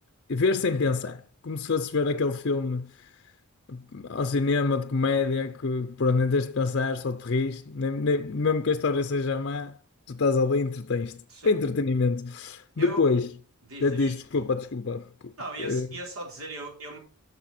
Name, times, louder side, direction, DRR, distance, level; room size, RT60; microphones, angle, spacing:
voice 1, 0.3-3.1 3.7-9.8 10.1-13.3 13.8-15.3 15.6-15.9, left 4 dB, 50° left, 0.6 m, -26 dB
voice 2, 12.8-13.1 13.6-14.1 15.4-17.0, right 2 dB, 70° right, 4.2 m, -38 dB
13.0 x 6.8 x 4.3 m
head